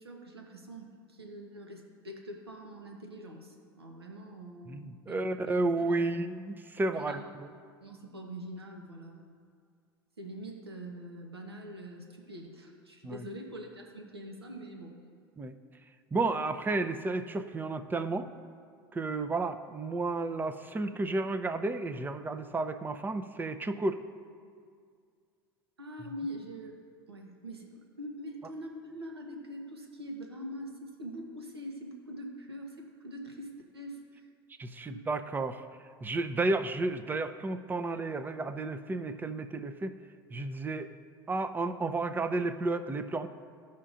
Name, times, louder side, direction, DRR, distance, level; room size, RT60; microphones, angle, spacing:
voice 1, 0.0-6.0 6.9-7.3 7.8-9.4 10.2-15.0 25.8-26.8 27.1-34.2 34.9-35.0, equal, 85° right, 2 dB, 1.1 m, -44 dB
voice 2, 4.7-7.5 13.0-13.2 15.4-15.6 16.1-18.3 18.9-24.0 34.6-35.7 36.0-40.0 40.3-40.9 41.3-43.3, right 2 dB, 15° right, 9 dB, 0.6 m, -32 dB
16.0 x 5.7 x 2.5 m, 2.2 s
figure-of-eight pair, 80°, 13 cm